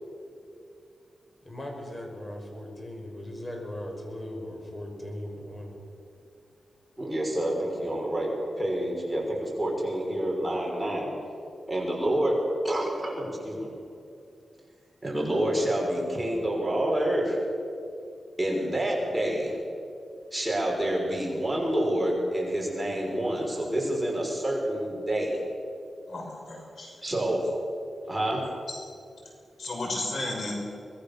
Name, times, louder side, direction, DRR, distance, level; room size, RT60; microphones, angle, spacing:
voice 1, 1.4-5.8, left 1 dB, 25° left, 1 dB, 5.7 m, -38 dB
voice 2, 7.0-8.3 8.6-11.1 11.7-12.4 12.6-13.7 15.0-17.4 18.4-19.6 20.3-25.4 27.0-27.4 28.1-28.4, right 1 dB, 10° right, -2 dB, 5.7 m, -28 dB
voice 3, 26.1-26.9 28.7-28.8 29.6-30.5, left 2 dB, 65° left, 0 dB, 6.0 m, -33 dB
24.5 x 20.0 x 6.9 m, 2.5 s
wide cardioid pair, 110°, 0 cm